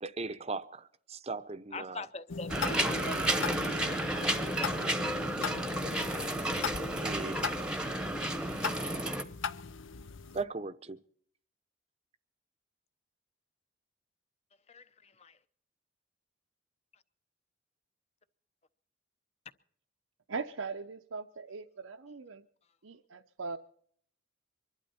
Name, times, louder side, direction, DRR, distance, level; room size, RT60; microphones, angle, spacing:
voice 1, 0.0-2.0 2.8-3.2 7.0-7.4 10.3-11.0, right 3 dB, 30° right, 0.7 m, -38 dB
voice 2, 1.7-4.8 14.7-15.4, left 2 dB, 30° left, 0.8 m, -44 dB
sound 1, 2.3-10.4, left 5 dB, 75° left, 0.7 m, -39 dB
sound 2, 2.5-9.2, right 1 dB, 5° right, 1.0 m, -32 dB
voice 3, 20.3-22.5 22.8-23.6, right 4 dB, 85° right, 0.7 m, -40 dB
24.5 x 12.0 x 4.2 m
head